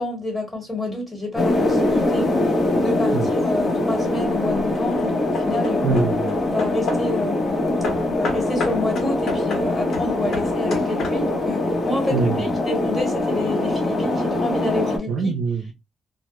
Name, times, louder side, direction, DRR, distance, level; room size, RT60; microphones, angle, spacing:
voice 1, 0.0-5.9 6.4-7.4 8.0-15.3, left 2 dB, 15° left, 1.3 m, -29 dB
sound 1, 1.4-15.0, left 2 dB, 35° left, 0.8 m, -23 dB
Hammer / Wood, 3.6-4.1 4.7-7.2 7.8-11.5, left 4 dB, 60° left, 0.9 m, -32 dB
voice 2, 5.8-6.3 12.1-12.5 15.1-15.7, right 4 dB, 70° right, 0.4 m, -23 dB
2.1 x 2.0 x 2.9 m
cardioid pair, 90°, 0 cm